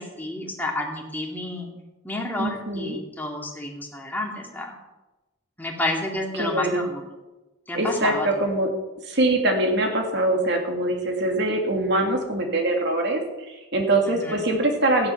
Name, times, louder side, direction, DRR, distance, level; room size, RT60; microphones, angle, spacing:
voice 1, 0.0-1.7 2.0-4.7 5.6-7.1 7.7-8.3 14.2-14.4, left 2 dB, 10° left, -1 dB, 2.3 m, -30 dB
voice 2, 2.4-3.0 6.4-6.9 7.7-8.7 9.0-15.1, right 2 dB, 55° right, 2 dB, 2.5 m, -23 dB
14.5 x 10.0 x 5.9 m, 1.1 s
head